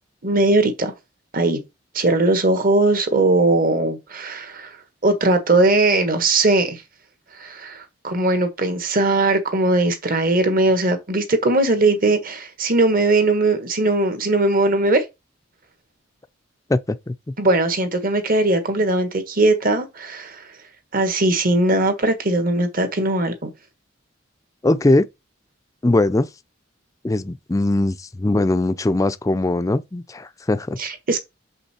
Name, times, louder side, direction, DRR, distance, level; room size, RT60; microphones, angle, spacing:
voice 1, 0.2-0.9 1.3-1.6 1.9-4.8 5.0-6.8 7.4-15.0 17.4-20.5 20.9-23.5 30.8-31.2, right 2 dB, 45° right, 1.5 m, -19 dB
voice 2, 16.7-17.1 24.6-25.1 25.8-26.3 27.0-30.8, left 2 dB, 15° left, 0.4 m, -20 dB
6.5 x 5.4 x 4.3 m
head